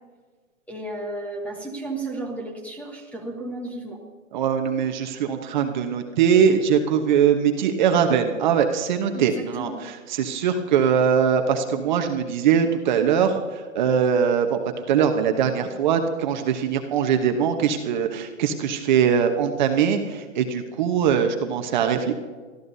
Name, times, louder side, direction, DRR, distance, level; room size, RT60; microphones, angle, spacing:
voice 1, 0.7-4.0 9.1-9.8, right 2 dB, 5° left, 2 dB, 1.2 m, -33 dB
voice 2, 4.3-14.6 14.9-22.1, right 7 dB, 35° right, 5 dB, 1.1 m, -21 dB
24.0 x 14.5 x 2.8 m, 1.4 s
hypercardioid pair, 150°, 40 cm